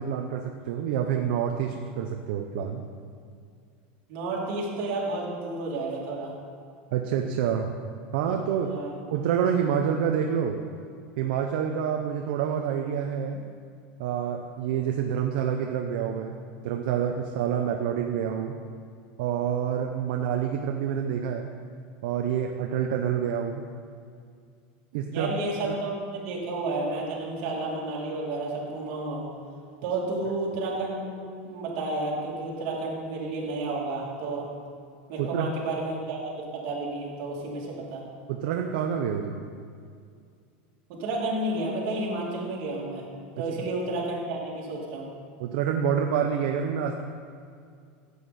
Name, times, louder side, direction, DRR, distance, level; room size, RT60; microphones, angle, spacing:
voice 1, 0.0-2.8 6.9-7.7 8.1-8.7 9.1-10.6 11.2-13.4 14.0-16.4 16.6-18.6 19.2-21.5 22.0-23.7 24.9-25.3 25.7-25.8 35.2-35.5 38.3-39.4 45.4-47.0, right 8 dB, 65° right, 3 dB, 0.7 m, -27 dB
voice 2, 4.1-6.4 8.6-8.9 25.1-29.3 29.8-34.5 35.1-38.0 40.9-43.1 43.4-45.1, right 2 dB, 50° right, -3 dB, 2.7 m, -31 dB
13.5 x 8.2 x 4.2 m, 2.2 s
supercardioid pair, 170°, 5 cm